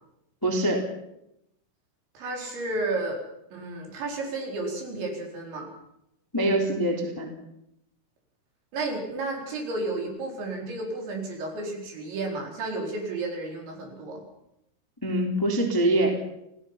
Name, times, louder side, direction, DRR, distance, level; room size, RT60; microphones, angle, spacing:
voice 1, 0.4-0.8 6.3-7.3 15.0-16.1, right 1 dB, 5° left, 1 dB, 2.2 m, -24 dB
voice 2, 2.1-3.2 3.5-5.7 8.7-14.2, right 2 dB, 65° right, 1 dB, 6.7 m, -32 dB
28.0 x 17.5 x 5.8 m, 0.82 s
omnidirectional pair, 5.7 m